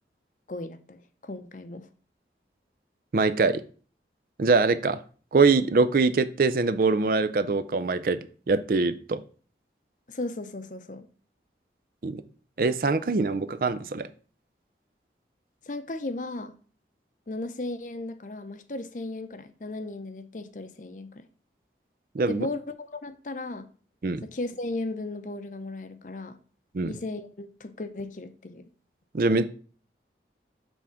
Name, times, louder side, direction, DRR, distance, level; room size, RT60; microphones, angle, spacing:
voice 1, 0.5-1.9 10.1-11.1 15.6-16.5 17.3-21.2 22.3-23.7 24.2-26.4 26.8-28.7, left 2 dB, 45° left, 0.6 m, -36 dB
voice 2, 3.1-3.6 4.4-5.0 5.3-8.2 8.5-9.2 12.0-12.2 12.6-14.1 22.1-22.5 24.0-24.2 26.7-26.9 29.1-29.5, right 4 dB, 50° right, 0.4 m, -23 dB
7.2 x 3.5 x 5.8 m
head